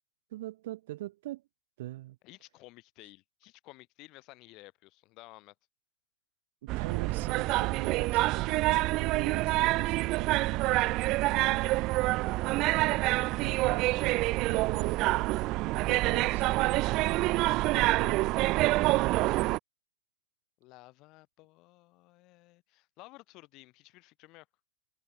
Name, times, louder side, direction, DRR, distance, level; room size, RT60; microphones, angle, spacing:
voice 1, 0.3-1.4 1.8-2.2 6.6-10.9 12.7-15.3 15.9-16.8 17.7-18.6, right 16 dB, 65° right, 1.0 m, -41 dB
voice 2, 2.2-5.5 11.6-11.8 20.6-24.5, left 21 dB, 40° left, 5.6 m, -54 dB
sound 1, 6.7-19.6, right 20 dB, 40° right, 0.3 m, -27 dB
supercardioid pair, 145°, 0 cm